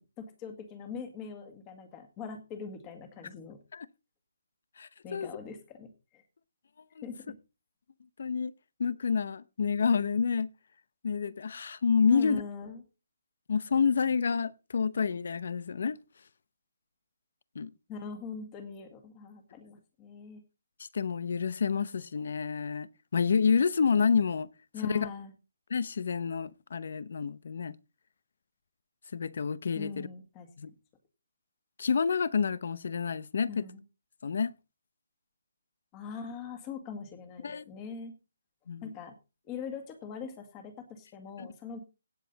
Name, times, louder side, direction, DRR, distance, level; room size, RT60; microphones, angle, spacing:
voice 1, 0.2-3.6 5.0-6.2 7.0-7.2 12.1-12.8 17.9-20.4 24.7-25.3 29.8-30.5 33.5-33.8 35.9-38.1 38.8-39.1 39.5-41.8, left 5 dB, 15° left, 1.9 m, -42 dB
voice 2, 4.8-5.3 7.0-7.1 8.2-8.5 8.8-10.5 11.0-12.4 13.5-16.0 17.5-17.7 20.9-22.9 23.1-24.5 24.8-25.1 25.7-27.7 29.1-30.1 30.6-30.7 31.8-33.7 34.2-34.5 37.4-37.6 38.7-38.8 41.4-41.5, left 6 dB, 55° left, 0.8 m, -28 dB
17.0 x 7.3 x 4.0 m
hypercardioid pair, 175°, 0 cm